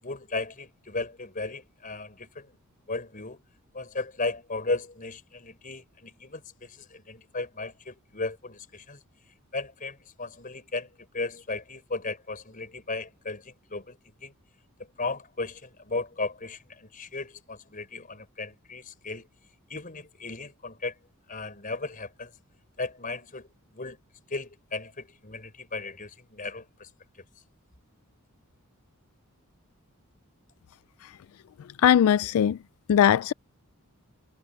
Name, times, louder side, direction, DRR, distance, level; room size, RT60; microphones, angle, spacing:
voice 1, 0.0-2.5 2.9-3.4 3.7-9.0 9.5-10.9 11.1-13.9 14.2-14.3 14.8-19.3 19.7-20.9 21.3-22.3 22.8-23.5 23.7-24.0 24.3-26.9, left 3 dB, 40° left, 5.0 m, -35 dB
voice 2, 31.8-32.6 32.9-33.3, left 9 dB, 75° left, 0.3 m, -19 dB
head